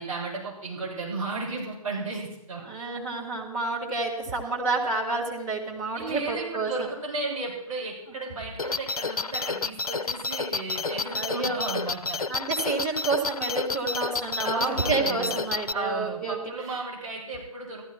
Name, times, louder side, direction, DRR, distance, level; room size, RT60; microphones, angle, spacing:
voice 1, 0.0-2.6 6.0-12.2 14.4-15.4 15.7-17.8, right 3 dB, 60° right, -4 dB, 6.9 m, -34 dB
voice 2, 2.6-6.7 11.0-11.6 12.3-16.4, right 3 dB, 20° right, -4 dB, 2.7 m, -29 dB
sound 1, 8.6-15.7, left 3 dB, 75° left, 0.6 m, -30 dB
15.0 x 13.0 x 4.6 m, 0.84 s
figure-of-eight pair, 140°, 19 cm